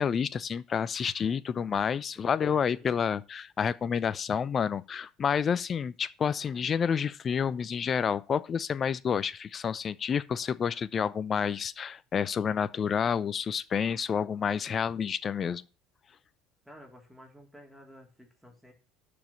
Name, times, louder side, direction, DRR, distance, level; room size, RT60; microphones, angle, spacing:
voice 1, 0.0-15.6, left 7 dB, 35° left, 0.7 m, -29 dB
voice 2, 2.1-2.9 16.6-18.7, equal, ahead, 3.3 m, -52 dB
12.0 x 5.2 x 7.1 m
hypercardioid pair, 65°, 0 cm